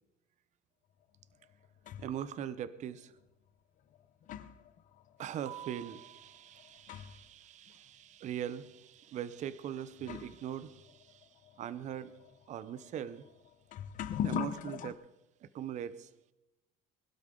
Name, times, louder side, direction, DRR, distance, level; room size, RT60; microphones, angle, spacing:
sound 1, 1.2-2.3 3.2-3.3 3.9-7.4 7.7-7.8 8.6-8.7 9.5-9.6 10.0-14.9, left 10 dB, 45° left, 0.8 m, -42 dB
voice 1, 2.0-3.1 5.2-11.3 11.6-12.1 12.5-13.2 14.2-15.0 15.4-16.1, right 10 dB, 40° right, 15 dB, 0.8 m, -41 dB
21.5 x 12.0 x 3.8 m, 0.96 s
cardioid pair, 140°, 18 cm